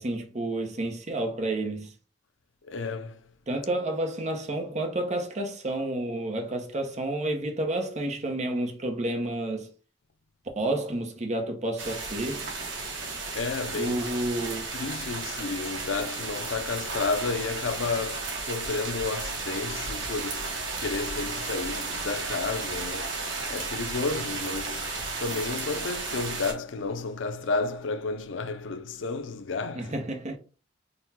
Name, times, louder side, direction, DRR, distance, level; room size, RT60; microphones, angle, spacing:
voice 1, 0.0-1.9 3.5-9.7 10.6-12.5 13.7-14.7 29.7-30.4, right 1 dB, 40° right, 0.8 m, -30 dB
voice 2, 2.6-3.2 13.3-14.1 14.7-29.9, left 4 dB, 85° left, 0.5 m, -32 dB
sound 1, 11.8-26.5, right 3 dB, 80° right, 1.2 m, -34 dB
4.0 x 2.2 x 4.1 m
head